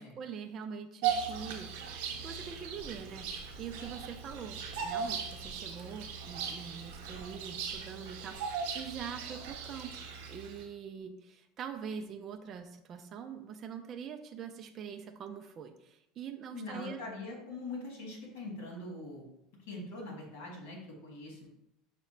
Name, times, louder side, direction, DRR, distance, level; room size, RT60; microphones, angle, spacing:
voice 1, 0.0-9.9 10.3-17.0, right 7 dB, 30° right, 6 dB, 0.3 m, -44 dB
Bird vocalization bird call bird song, 1.0-10.6, right 6 dB, 70° right, 0.7 m, -38 dB
voice 2, 16.5-19.3 19.7-21.5, left 2 dB, 80° left, 0 dB, 1.5 m, -42 dB
5.7 x 2.1 x 4.2 m, 0.80 s
cardioid pair, 165°, 0 cm